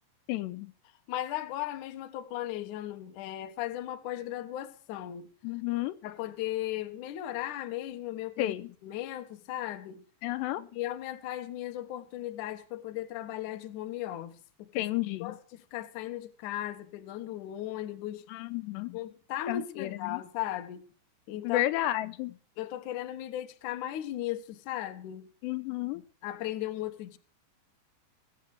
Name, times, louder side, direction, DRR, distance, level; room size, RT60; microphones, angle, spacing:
voice 1, 0.3-0.7 5.4-5.9 8.4-8.7 10.2-10.6 14.7-15.4 18.3-19.0 19.5-20.2 21.4-22.4 25.4-26.0, left 15 dB, 85° left, 2.9 m, -32 dB
voice 2, 1.1-5.3 6.0-8.6 8.8-10.0 10.6-14.9 15.2-18.3 18.9-20.9 21.3-21.7 22.6-25.3 26.2-27.2, left 13 dB, 65° left, 2.2 m, -37 dB
21.5 x 8.4 x 4.8 m
omnidirectional pair, 4.9 m